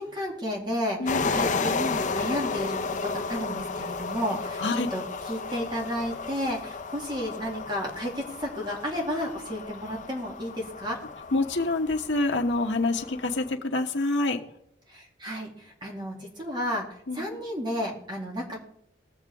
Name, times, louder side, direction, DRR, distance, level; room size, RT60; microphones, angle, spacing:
voice 1, 0.0-11.0 14.9-15.5 15.8-16.9 17.1-18.6, equal, 25° right, -1 dB, 2.6 m, -32 dB
voice 2, 1.0-1.3 4.6-4.9 11.3-14.4 17.1-17.2, left 2 dB, 85° left, 3 dB, 1.1 m, -26 dB
sound 1, 1.1-13.5, left 4 dB, 45° left, 0.6 m, -33 dB
20.5 x 7.0 x 3.5 m, 0.75 s
head